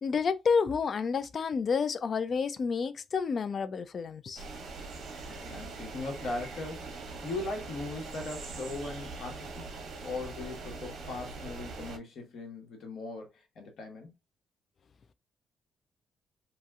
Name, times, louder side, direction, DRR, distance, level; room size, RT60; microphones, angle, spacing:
voice 1, 0.0-4.4, left 5 dB, 40° left, 0.3 m, -29 dB
sound 1, 4.4-12.0, right 3 dB, 70° right, 1.0 m, -42 dB
voice 2, 5.3-9.7 10.0-14.1, left 2 dB, 65° left, 1.3 m, -39 dB
3.0 x 2.8 x 2.3 m
cardioid pair, 140°, 0 cm